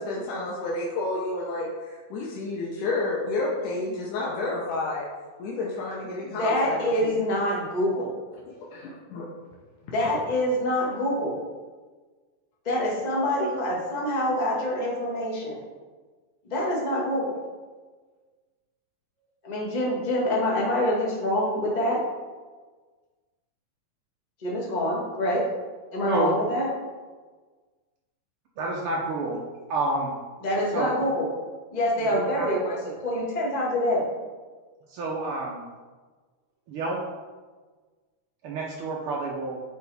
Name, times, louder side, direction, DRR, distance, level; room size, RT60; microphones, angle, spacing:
voice 1, 0.0-5.1 5.4-7.2 8.7-9.2, left 2 dB, 85° left, -3 dB, 2.4 m, -30 dB
voice 2, 6.3-8.1 9.9-11.4 12.6-15.6 16.4-17.4 19.5-22.0 24.4-25.4 25.9-26.7 30.4-31.3 31.7-34.0, left 1 dB, 25° left, -4 dB, 0.9 m, -26 dB
voice 3, 26.1-26.4 28.6-29.4 29.7-30.1 30.7-31.0 32.0-32.5 34.9-35.7 36.7-37.1 38.4-39.6, right 2 dB, 80° right, -2 dB, 1.2 m, -29 dB
9.5 x 4.7 x 3.4 m, 1.4 s
omnidirectional pair, 3.5 m